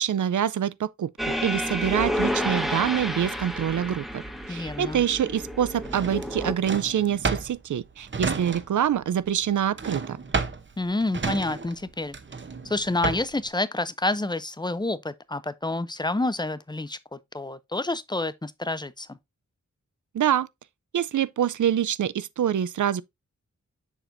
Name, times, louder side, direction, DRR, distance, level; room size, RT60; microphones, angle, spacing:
voice 1, 0.0-4.2 4.5-10.2 20.1-20.5 20.9-23.0, right 9 dB, 80° right, 0.5 m, -25 dB
sound 1, 1.2-6.5, equal, ahead, 1.1 m, -30 dB
voice 2, 4.5-5.0 10.8-12.2 12.6-19.2, left 2 dB, 15° left, 0.5 m, -28 dB
Drawer open or close, 5.8-9.0 9.2-13.5, right 4 dB, 40° right, 0.8 m, -31 dB
7.0 x 5.9 x 2.6 m
wide cardioid pair, 100°, 30 cm